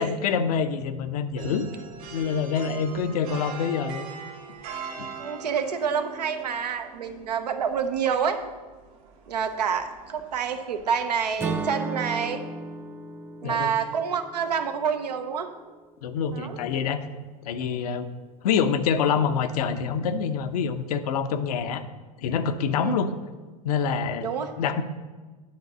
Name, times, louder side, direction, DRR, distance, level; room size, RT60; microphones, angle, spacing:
voice 1, 0.0-1.7 2.1-4.1 5.0-5.1 13.4-13.7 16.0-17.1 17.4-18.1 18.4-21.9 22.2-23.1 23.6-24.8, left 6 dB, 70° left, 9 dB, 0.7 m, -26 dB
sound 1, 1.4-11.7, right 5 dB, 60° right, 1.7 m, -42 dB
voice 2, 5.2-8.4 9.3-12.4 13.4-15.5 16.3-16.6 22.8-22.9 24.2-24.5, right 7 dB, 80° right, 7 dB, 0.8 m, -28 dB
Acoustic guitar / Strum, 11.4-15.5, right 3 dB, 10° right, 0.5 m, -35 dB
9.6 x 3.9 x 5.9 m, 1.3 s
hypercardioid pair, 90°, 21 cm